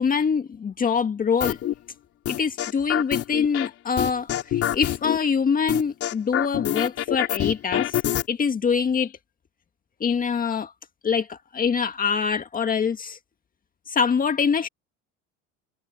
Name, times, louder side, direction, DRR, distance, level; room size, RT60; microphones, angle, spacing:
voice 1, 0.0-1.6 2.3-8.0 8.3-9.1 10.0-10.7 11.0-13.2 13.9-14.7, left 6 dB, 30° left, 1.8 m, -24 dB
sound 1, 1.4-1.7 2.3-3.7 4.0-5.2 5.7-8.2, left 12 dB, 50° left, 4.1 m, -25 dB
supercardioid pair, 120°, 30 cm